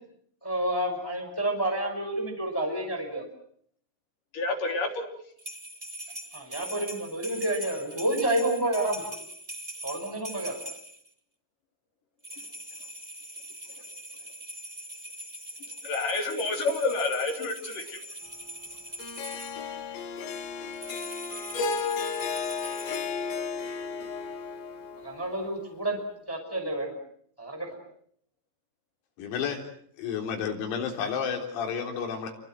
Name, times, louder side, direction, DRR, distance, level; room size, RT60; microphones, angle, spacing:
voice 1, 0.4-3.2 6.3-9.2 9.8-10.6 25.0-26.0 26.3-26.9 27.4-27.7, right 1 dB, 5° left, 3 dB, 5.0 m, -29 dB
voice 2, 4.3-5.0 15.8-18.0, left 3 dB, 45° left, 3 dB, 4.6 m, -29 dB
sound 1, 5.4-11.1 12.2-19.6 20.7-23.0, right 1 dB, 70° right, 0.3 m, -42 dB
Harp, 19.0-25.4, left 5 dB, 65° left, 4.6 m, -33 dB
voice 3, 29.2-29.6 30.0-32.3, left 7 dB, 90° left, 3 dB, 6.5 m, -31 dB
29.5 x 23.5 x 7.7 m, 0.63 s
omnidirectional pair, 6.0 m